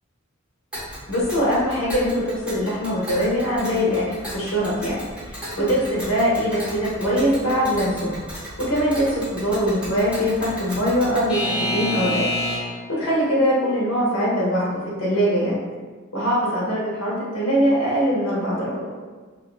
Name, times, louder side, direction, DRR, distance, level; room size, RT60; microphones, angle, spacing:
Alarm / Clock, 0.7-12.9, left 1 dB, 5° right, 0.7 m, -32 dB
voice 1, 1.1-4.0 4.3-8.1 8.6-12.2 12.6-15.6 16.1-18.9, equal, 75° left, -6 dB, 0.7 m, -22 dB
2.5 x 2.1 x 2.4 m, 1.4 s
head